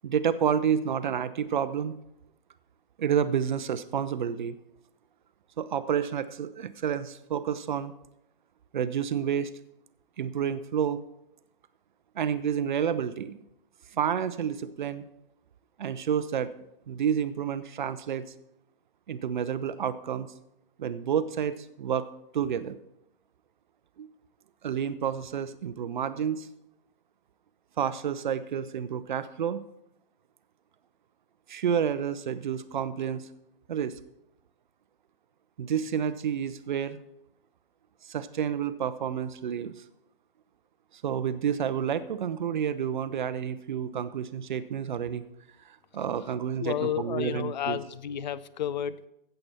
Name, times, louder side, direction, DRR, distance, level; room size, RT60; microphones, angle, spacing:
voice 1, 0.0-1.9 3.0-4.6 5.6-7.9 8.7-9.5 10.2-11.0 12.2-13.4 13.9-15.1 15.8-16.5 16.9-18.2 19.1-20.3 20.8-22.1 22.3-22.8 24.0-24.1 24.6-26.5 27.8-29.6 31.5-33.3 33.7-33.9 35.6-37.0 38.0-39.7 41.0-45.2 45.7-47.8, right 8 dB, 55° right, 14 dB, 0.7 m, -29 dB
voice 2, 46.6-49.1, left 10 dB, 50° left, 17 dB, 0.6 m, -31 dB
15.0 x 7.9 x 4.3 m, 0.82 s
figure-of-eight pair, 125°, 29 cm